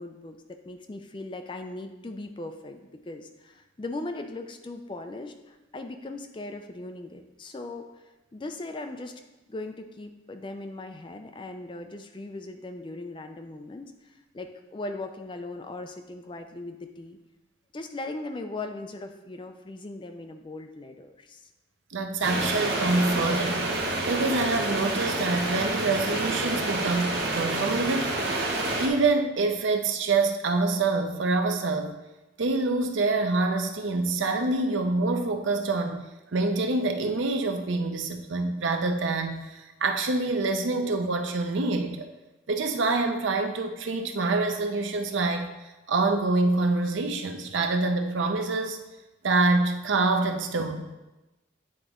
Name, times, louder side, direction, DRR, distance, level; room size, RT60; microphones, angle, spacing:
voice 1, 0.0-9.2 9.5-17.2 17.7-21.5, left 2 dB, 25° left, 6 dB, 0.4 m, -39 dB
voice 2, 21.9-23.7 24.1-28.2 28.8-31.9 32.4-36.0 36.3-42.1 42.5-45.5 45.9-48.8 49.2-50.8, right 3 dB, 80° right, 5 dB, 0.6 m, -26 dB
sound 1, 22.2-28.9, right 2 dB, 55° right, 0.9 m, -28 dB
8.6 x 3.9 x 3.6 m, 1.0 s
head